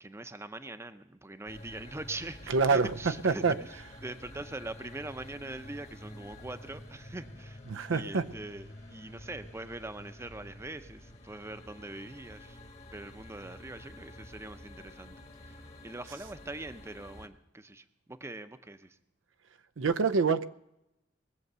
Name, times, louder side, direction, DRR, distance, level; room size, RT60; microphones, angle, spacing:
voice 1, 0.0-7.6 7.9-12.6 12.9-15.2 15.4-19.0, right 2 dB, 15° right, 10 dB, 0.6 m, -43 dB
sound 1, 1.5-17.3, left 1 dB, 35° left, 1.3 m, -49 dB
voice 2, 2.5-2.9 3.2-3.6 7.7-8.3 19.8-20.5, right 4 dB, 90° right, 11 dB, 0.6 m, -26 dB
20.5 x 7.8 x 6.7 m, 0.88 s
head